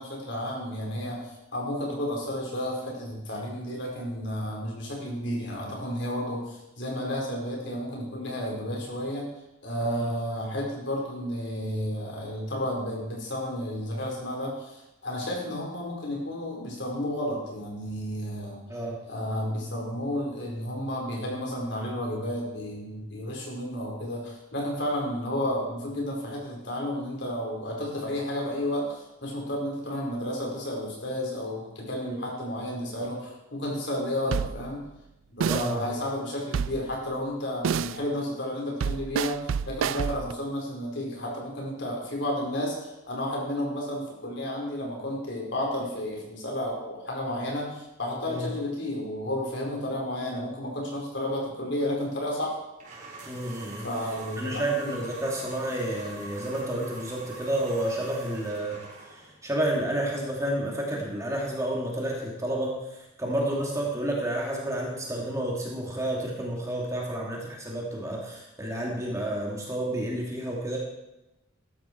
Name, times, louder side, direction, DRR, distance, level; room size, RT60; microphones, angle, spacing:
voice 1, 0.0-9.3 9.6-18.6 19.0-34.8 35.3-52.6 53.8-55.0 63.4-63.6, left 1 dB, 55° left, -1 dB, 4.5 m, -32 dB
voice 2, 18.7-19.0 32.0-32.2 35.4-35.9 48.3-48.5 53.2-53.9 54.4-70.8, right 1 dB, 15° right, -2 dB, 2.6 m, -30 dB
sound 1, 34.3-34.7 35.4-35.8 36.5-36.9 37.6-38.0 38.8-40.3, right 7 dB, 75° right, 0.4 m, -28 dB
sound 2, 52.8-59.3, right 2 dB, 35° right, 4.2 m, -44 dB
15.5 x 12.5 x 4.6 m, 0.94 s
head